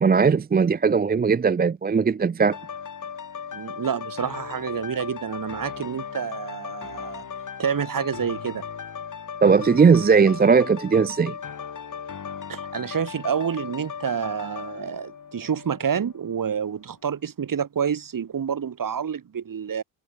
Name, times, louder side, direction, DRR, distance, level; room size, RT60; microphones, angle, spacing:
voice 1, 0.0-2.6 9.4-11.3, right 5 dB, 25° right, 0.6 m, -18 dB
sound 1, 2.5-16.2 16.7-16.8, left 7 dB, 45° left, 4.4 m, -37 dB
voice 2, 3.5-7.2 7.6-8.6 12.5-19.8, right 7 dB, 50° right, 4.4 m, -28 dB
supercardioid pair, 65°, 41 cm